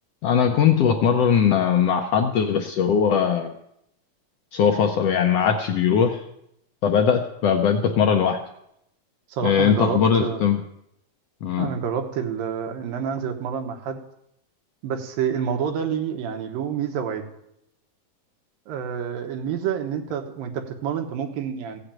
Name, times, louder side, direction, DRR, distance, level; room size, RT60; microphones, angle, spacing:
voice 1, 0.2-3.5 4.5-6.2 6.8-8.4 9.4-10.6 11.4-11.7, left 7 dB, 90° left, 4 dB, 1.3 m, -20 dB
voice 2, 9.3-10.5 11.6-14.0 14.8-17.2 18.7-21.8, right 7 dB, 85° right, 5 dB, 3.0 m, -28 dB
16.0 x 6.5 x 8.9 m, 0.78 s
omnidirectional pair, 3.9 m